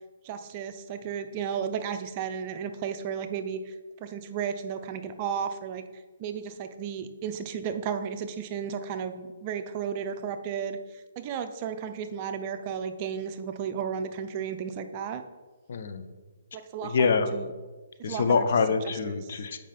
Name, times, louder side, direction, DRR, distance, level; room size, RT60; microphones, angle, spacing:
voice 1, 0.2-5.8 6.2-15.2 16.5-17.5 18.0-18.4 18.8-19.2, right 7 dB, 35° right, 8 dB, 0.6 m, -34 dB
voice 2, 15.7-16.1 16.8-17.3 18.0-19.6, left 5 dB, 60° left, 8 dB, 0.8 m, -25 dB
7.5 x 5.1 x 5.1 m, 1.3 s
hypercardioid pair, 145°, 0 cm